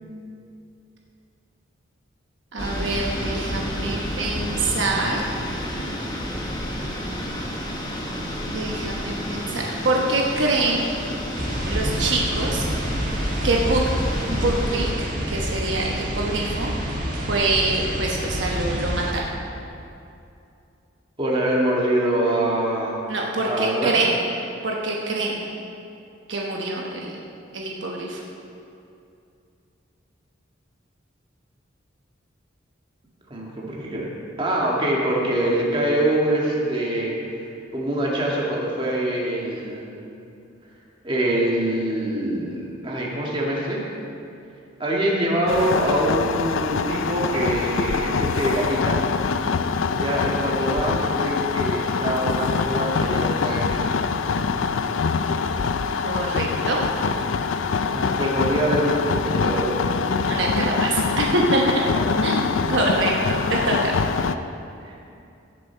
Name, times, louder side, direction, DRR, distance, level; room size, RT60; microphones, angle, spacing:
voice 1, 2.5-5.2 8.5-10.9 11.7-12.6 13.4-14.0 14.3-16.7 17.3-19.3 23.1-24.2 24.6-25.4 26.3-27.2 27.5-28.2 56.0-56.8 60.3-61.6 62.2-63.9, right 2 dB, 65° right, -2 dB, 1.1 m, -25 dB
sound 1, 2.6-14.9, equal, 20° left, 1.4 m, -30 dB
sound 2, 11.3-19.1, equal, 45° right, 1.9 m, -28 dB
voice 2, 21.2-23.0 23.5-24.1 33.3-34.1 34.4-37.5 37.7-39.9 41.0-43.8 44.8-49.0 49.9-53.9 57.8-60.2 61.9-62.1 64.8-65.1, right 1 dB, 25° right, -3 dB, 1.9 m, -24 dB
sound 3, 45.5-64.3, left 5 dB, 85° left, 0.5 m, -24 dB
16.5 x 7.1 x 4.5 m, 2.6 s
head